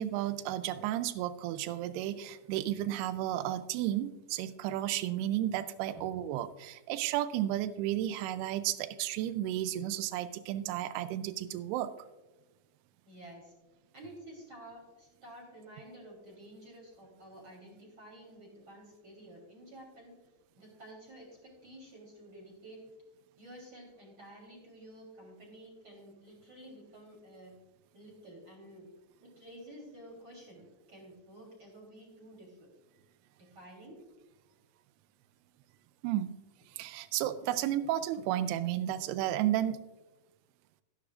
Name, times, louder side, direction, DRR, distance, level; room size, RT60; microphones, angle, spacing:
voice 1, 0.0-11.9 36.0-36.3 36.7-39.8, right 12 dB, 80° right, 13 dB, 2.5 m, -33 dB
voice 2, 13.0-13.5 13.9-20.1 20.5-22.8 23.4-27.5 27.9-28.9 29.2-30.6 30.9-32.7 33.4-34.0, right 1 dB, 25° right, -1 dB, 3.3 m, -51 dB
14.5 x 10.5 x 2.5 m, 1.1 s
omnidirectional pair, 4.9 m